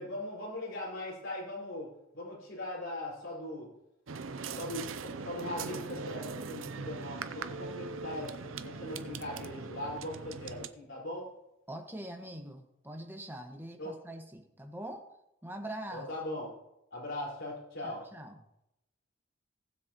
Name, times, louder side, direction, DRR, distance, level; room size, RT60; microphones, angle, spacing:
voice 1, 0.0-3.7 4.5-11.3 13.8-14.0 15.9-16.5 16.9-18.0, left 1 dB, 70° left, -4 dB, 4.9 m, -40 dB
sound 1, 4.1-10.7, right 4 dB, 90° right, 0.6 m, -41 dB
voice 2, 11.7-15.0 15.4-16.1 17.8-18.4, right 1 dB, 10° right, 3 dB, 1.3 m, -43 dB
19.0 x 7.5 x 3.0 m, 0.83 s
head